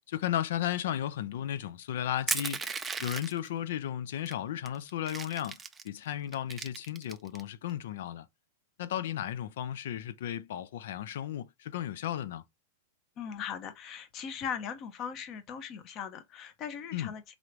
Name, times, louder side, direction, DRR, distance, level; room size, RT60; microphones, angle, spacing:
voice 1, 0.1-2.6 3.0-5.6 5.8-8.3 8.8-12.4 16.9-17.1, left 11 dB, 70° left, 0.5 m, -34 dB
Crushing, 2.3-3.5 4.3-4.4 4.7-5.9 6.3-7.4, right 5 dB, 10° right, 0.3 m, -35 dB
voice 2, 13.2-17.3, left 7 dB, 30° left, 0.7 m, -39 dB
3.9 x 3.1 x 3.1 m
supercardioid pair, 160°, 0 cm